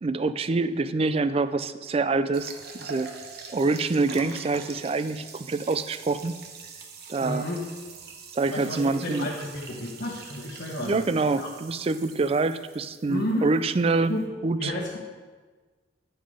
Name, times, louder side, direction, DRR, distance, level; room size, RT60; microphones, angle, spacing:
voice 1, 0.0-3.1 3.5-6.4 7.1-7.4 8.3-9.3 10.8-14.1 14.4-14.7, right 3 dB, 35° right, 12 dB, 0.4 m, -26 dB
sound 1, 2.3-14.2, right 5 dB, 60° right, 0.9 m, -44 dB
voice 2, 7.2-7.6 8.5-11.0 11.4-11.5 13.1-13.6 14.1-14.2 14.6-15.0, left 1 dB, 60° left, -4 dB, 1.2 m, -31 dB
9.4 x 5.6 x 5.0 m, 1.4 s
head